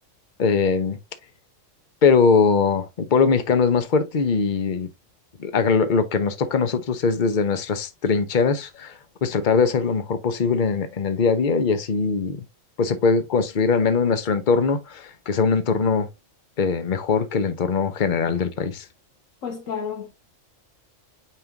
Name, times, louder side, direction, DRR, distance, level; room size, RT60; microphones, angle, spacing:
voice 1, 0.4-1.0 2.0-4.9 5.4-12.4 12.8-16.1 16.6-18.8, left 5 dB, 40° left, 1.0 m, -21 dB
voice 2, 19.4-20.1, left 6 dB, 80° left, 1.6 m, -31 dB
8.8 x 3.7 x 2.9 m
omnidirectional pair, 1.3 m